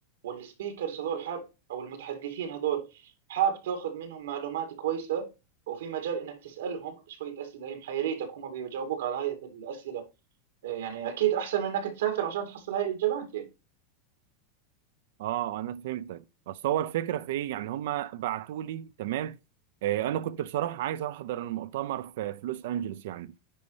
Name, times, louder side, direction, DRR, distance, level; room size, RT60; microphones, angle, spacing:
voice 1, 0.2-1.4 1.7-5.3 5.7-10.0 10.6-13.5 17.5-17.7, right 9 dB, 90° right, 2.2 m, -32 dB
voice 2, 15.2-19.4 19.8-23.3, right 12 dB, 70° right, 0.5 m, -32 dB
10.0 x 4.1 x 3.2 m
supercardioid pair, 140°, 0 cm